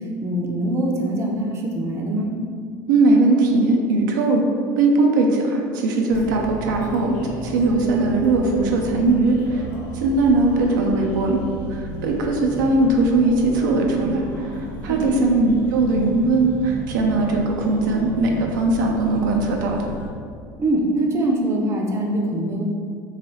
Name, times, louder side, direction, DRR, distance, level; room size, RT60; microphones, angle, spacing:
voice 1, 0.2-2.4 14.9-15.3 20.6-22.7, right 1 dB, 25° right, 0 dB, 0.5 m, -23 dB
voice 2, 2.9-4.5 4.8-9.6 9.9-11.4 11.7-14.5 14.8-19.8, right 2 dB, 85° right, 1 dB, 0.4 m, -19 dB
sound 1, 6.1-20.1, equal, 90° left, 0.5 m, -35 dB
3.1 x 2.2 x 2.9 m, 2.3 s
supercardioid pair, 100°, 10 cm